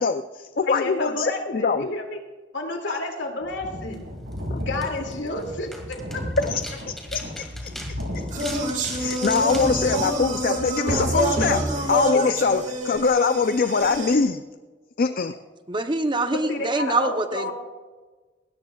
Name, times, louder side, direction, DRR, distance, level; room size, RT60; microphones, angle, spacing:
voice 1, 0.0-1.9 4.5-4.6 6.5-6.6 7.1-7.7 8.1-8.2 8.9-14.4 15.0-15.3, left 4 dB, 50° left, 9 dB, 0.4 m, -23 dB
voice 2, 0.7-2.2 2.5-4.1 4.6-6.2 12.1-12.3 15.0-15.1 16.3-17.5, left 2 dB, 75° left, 2 dB, 2.5 m, -30 dB
sound 1, 3.4-10.6, equal, 90° right, 5.1 m, -34 dB
sound 2, 3.8-10.8, equal, ahead, 2.2 m, -42 dB
sound 3, 8.3-14.2, right 1 dB, 40° right, 1.9 m, -27 dB
voice 3, 15.7-17.5, right 2 dB, 25° right, 8 dB, 0.7 m, -24 dB
19.5 x 16.5 x 2.4 m, 1.3 s
head